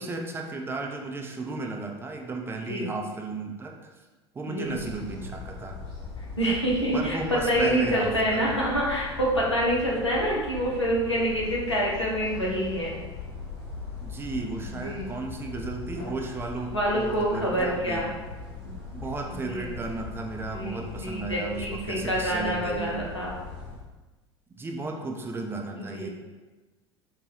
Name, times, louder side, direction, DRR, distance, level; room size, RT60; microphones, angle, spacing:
voice 1, 0.0-3.9 4.3-5.8 6.9-8.5 14.0-18.1 18.9-23.0 24.5-26.1, right 3 dB, 15° right, 1 dB, 0.4 m, -34 dB
sound 1, 4.6-23.8, left 4 dB, 50° left, 1.4 m, -40 dB
voice 2, 6.4-12.9 14.6-15.1 16.7-18.1 18.6-18.7 19.4-19.7 20.5-23.3 25.7-26.1, equal, 90° left, -4 dB, 0.7 m, -27 dB
4.7 x 2.2 x 2.8 m, 1.2 s
figure-of-eight pair, 70°, 14 cm